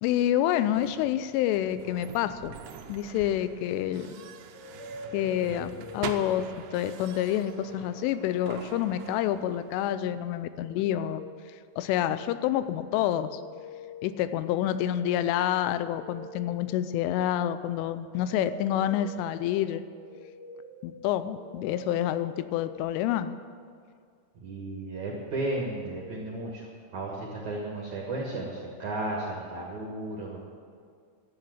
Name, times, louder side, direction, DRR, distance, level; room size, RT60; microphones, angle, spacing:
voice 1, 0.0-2.6 2.9-4.1 5.1-11.2 11.8-13.4 14.0-19.8 20.8-23.4, left 11 dB, 85° left, 13 dB, 3.1 m, -28 dB
sound 1, 0.7-9.9, right 7 dB, 80° right, 2.7 m, -44 dB
sound 2, 4.4-6.8 7.1-22.8, equal, 45° left, 3.1 m, -47 dB
voice 2, 24.4-30.5, right 2 dB, 60° right, -2 dB, 2.0 m, -34 dB
12.5 x 8.8 x 9.3 m, 2.2 s
omnidirectional pair, 5.7 m